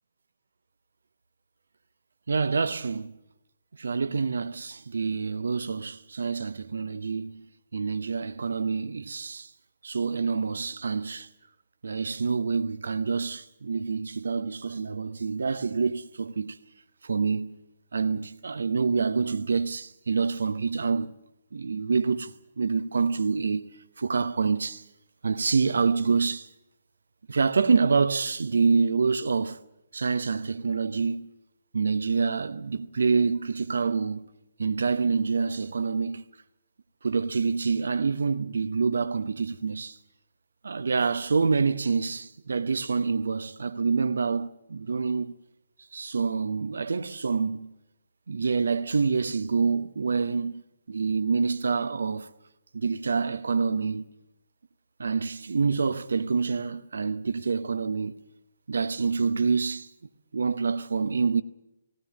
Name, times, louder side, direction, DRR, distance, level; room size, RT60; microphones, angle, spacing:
voice 1, 2.3-3.2 3.8-7.4 7.7-9.5 9.8-11.3 11.8-16.6 17.0-17.6 17.9-21.1 21.5-23.7 24.0-24.8 25.2-26.5 27.3-29.6 29.9-31.3 31.7-34.2 34.6-36.2 37.0-40.0 40.6-45.3 45.9-47.7 48.3-50.6 50.9-52.3 52.7-54.1 55.0-58.2 58.7-59.9 60.3-61.4, right 5 dB, 70° right, 0.8 m, -27 dB
18.5 x 18.0 x 9.6 m
figure-of-eight pair, 135°, 0 cm